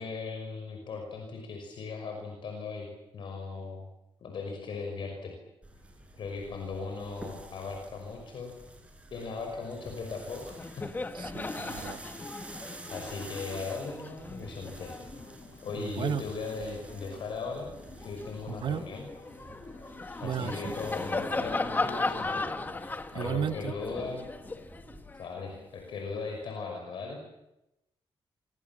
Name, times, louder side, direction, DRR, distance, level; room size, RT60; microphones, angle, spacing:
voice 1, 0.0-3.9 4.2-5.3 6.1-8.6 9.1-10.9 12.9-14.9 15.6-17.7 18.0-19.1 20.2-22.5 23.1-24.3 25.1-27.2, left 4 dB, 60° left, 3 dB, 5.8 m, -38 dB
sound 1, 5.6-25.0, right 1 dB, 15° right, 6.9 m, -49 dB
Laughter, 10.1-10.2 10.5-17.2 17.7-25.9, left 3 dB, 20° left, 1.6 m, -37 dB
voice 2, 11.1-12.0 15.8-16.2 18.5-18.9 20.2-20.7 23.1-23.7, right 8 dB, 60° right, 13 dB, 1.0 m, -34 dB
sound 2, 14.9-21.3, left 3 dB, 80° left, 6.6 m, -57 dB
28.0 x 25.0 x 7.4 m, 0.91 s
cardioid pair, 145°, 9 cm